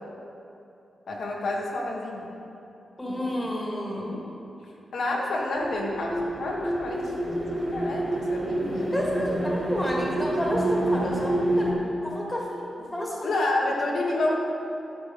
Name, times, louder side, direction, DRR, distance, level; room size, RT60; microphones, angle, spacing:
voice 1, 1.1-2.3 3.0-3.5 3.8-4.2 4.9-9.4 9.8-9.9 13.2-14.4, left 2 dB, 75° left, -2 dB, 1.5 m, -30 dB
voice 2, 3.0-4.2 8.9-11.7 12.0-12.6 12.9-13.4, equal, 10° left, -3 dB, 1.8 m, -30 dB
sound 1, 5.5-11.7, right 1 dB, 35° right, 2.7 m, -28 dB
11.0 x 7.1 x 5.1 m, 2.9 s
wide cardioid pair, 150°, 0 cm